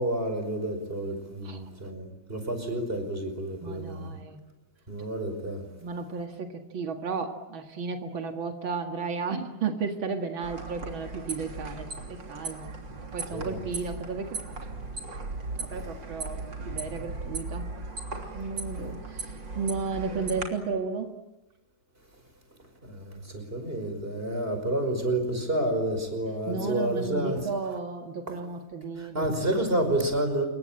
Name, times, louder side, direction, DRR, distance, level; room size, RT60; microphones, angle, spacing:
voice 1, 0.0-4.2 4.9-5.7 13.3-13.6 22.8-27.5 28.3-28.4 29.0-30.5, right 1 dB, 30° right, 6 dB, 5.5 m, -29 dB
voice 2, 3.6-4.4 5.8-12.7 13.1-14.4 15.6-16.4 16.7-17.7 18.3-21.1 26.5-29.3, right 5 dB, 85° right, 4 dB, 2.7 m, -33 dB
sound 1, 10.4-20.4, right 3 dB, 70° right, 3.9 m, -37 dB
27.5 x 23.5 x 8.8 m, 1.0 s
omnidirectional pair, 2.1 m